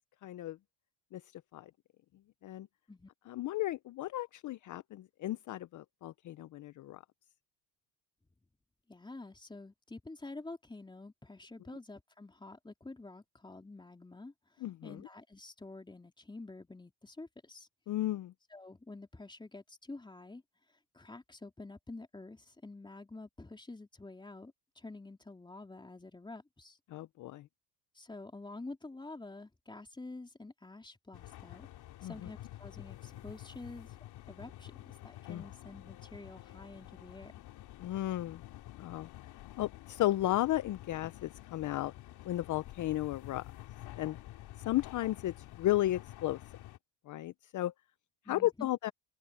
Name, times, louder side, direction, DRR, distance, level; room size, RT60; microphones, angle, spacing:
voice 1, 0.2-0.6 1.1-1.2 1.5-1.7 2.4-2.7 3.3-7.0 14.6-15.0 17.9-18.3 26.9-27.5 32.0-32.1 35.3-35.4 37.8-38.4 38.8-39.1 39.6-41.9 42.2-43.4 44.0-44.2 44.6-46.4 47.1-47.7 48.3-48.9, left 15 dB, 50° left, 0.7 m, -34 dB
voice 2, 8.9-14.3 14.8-17.7 18.5-20.4 20.9-26.8 28.0-31.7 32.0-34.0 34.3-34.8 35.0-37.3 48.3-48.7, left 2 dB, 10° left, 3.5 m, -48 dB
sound 1, 31.1-46.8, left 15 dB, 65° left, 3.2 m, -50 dB
open air
supercardioid pair, 95°, 40 cm